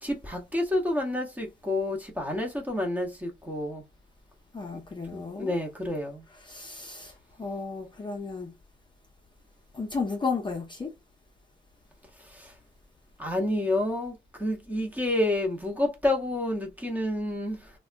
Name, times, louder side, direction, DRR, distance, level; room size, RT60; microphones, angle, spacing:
voice 1, 0.0-3.8 5.1-6.2 12.2-12.5 13.2-17.7, left 1 dB, 10° right, 0.8 m, -29 dB
voice 2, 4.5-5.6 6.4-8.5 9.7-10.9, left 4 dB, 25° left, 0.6 m, -33 dB
3.4 x 2.2 x 2.4 m
wide cardioid pair, 145°, 18 cm